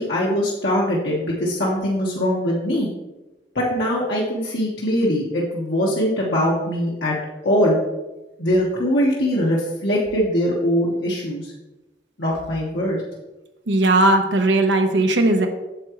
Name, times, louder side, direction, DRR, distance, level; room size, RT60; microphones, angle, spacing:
voice 1, 0.0-2.9 3.5-7.2 7.4-7.8 8.4-11.5 12.2-13.0, equal, 65° left, -5 dB, 1.3 m, -22 dB
voice 2, 13.7-15.5, right 2 dB, 75° right, 5 dB, 1.0 m, -17 dB
8.5 x 7.2 x 3.1 m, 1.0 s
head